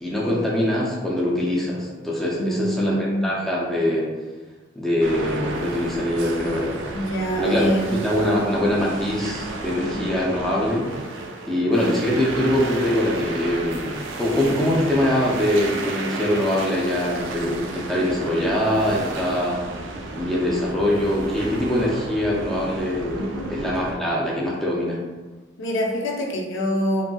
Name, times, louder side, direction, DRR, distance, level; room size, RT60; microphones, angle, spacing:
voice 1, 0.0-4.1 4.7-6.8 7.4-10.9 11.5-19.6 20.1-25.0, left 1 dB, ahead, -5 dB, 0.4 m, -23 dB
voice 2, 2.4-3.3 6.9-8.0 9.8-10.0 23.1-23.5 25.6-27.0, equal, 85° left, -1 dB, 0.5 m, -25 dB
sound 1, 5.0-24.0, right 2 dB, 80° right, 0.3 m, -33 dB
2.7 x 2.6 x 2.2 m, 1.2 s
head